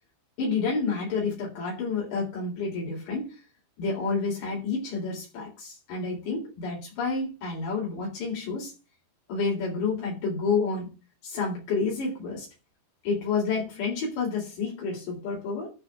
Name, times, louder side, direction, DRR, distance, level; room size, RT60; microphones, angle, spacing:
voice 1, 0.4-3.4 3.8-8.7 9.3-10.9 11.2-12.5 13.0-15.7, left 4 dB, 65° left, -3 dB, 6.1 m, -29 dB
12.0 x 4.4 x 8.2 m, 0.32 s
omnidirectional pair, 5.6 m